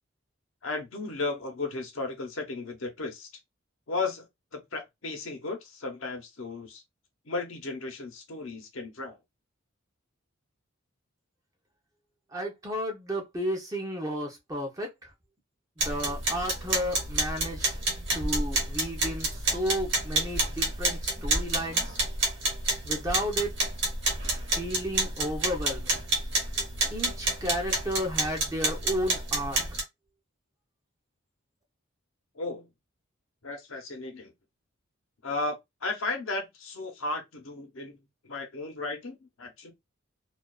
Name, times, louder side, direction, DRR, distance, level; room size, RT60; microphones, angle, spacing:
voice 1, 0.6-3.3 3.9-4.3 4.5-6.8 7.3-9.2 32.3-32.7 33.4-34.3 35.2-38.0 38.2-39.7, left 3 dB, 75° left, 0.8 m, -35 dB
voice 2, 12.3-14.9 15.8-17.7 18.1-19.3 19.5-21.9 22.8-23.5 24.5-26.0 26.9-29.8, equal, 15° right, 0.6 m, -33 dB
sound 1, 15.8-29.8, right 2 dB, 60° right, 1.0 m, -29 dB
2.4 x 2.2 x 2.3 m
head